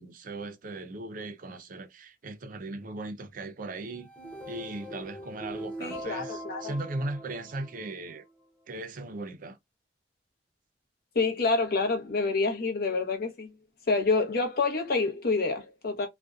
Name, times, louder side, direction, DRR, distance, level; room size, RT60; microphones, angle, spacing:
voice 1, 0.0-4.1 4.5-8.2 8.7-9.6, right 2 dB, 50° right, 0.5 m, -38 dB
sound 1, 3.9-8.2, right 1 dB, 10° left, 0.6 m, -42 dB
voice 2, 5.8-6.7 11.1-13.5 13.9-16.1, left 3 dB, 60° left, 0.7 m, -27 dB
2.5 x 2.1 x 2.3 m
head